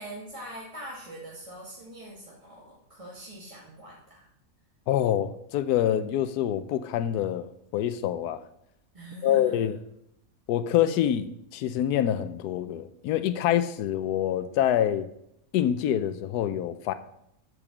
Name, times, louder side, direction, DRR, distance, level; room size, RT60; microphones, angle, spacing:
voice 1, 0.0-4.3 8.9-9.7, right 1 dB, 20° right, -5 dB, 1.8 m, -43 dB
voice 2, 4.9-7.5 7.7-8.4 9.2-9.8 10.5-15.1 15.5-16.9, left 11 dB, 85° left, 12 dB, 1.1 m, -26 dB
8.7 x 6.9 x 6.0 m, 0.78 s
omnidirectional pair, 1.7 m